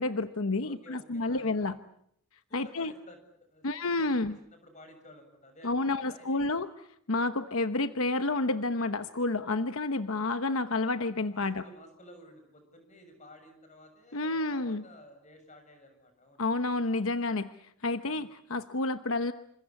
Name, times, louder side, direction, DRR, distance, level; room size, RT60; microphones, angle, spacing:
voice 1, 0.0-1.8 2.5-2.9 3.6-4.3 5.6-6.7 7.1-11.6 14.1-14.8 16.4-17.5 17.8-19.3, left 2 dB, 70° left, 10 dB, 1.0 m, -30 dB
voice 2, 0.6-1.8 2.5-6.4 11.3-16.6 18.1-18.3, left 1 dB, 35° left, 7 dB, 7.1 m, -54 dB
28.5 x 26.5 x 7.2 m, 0.71 s
head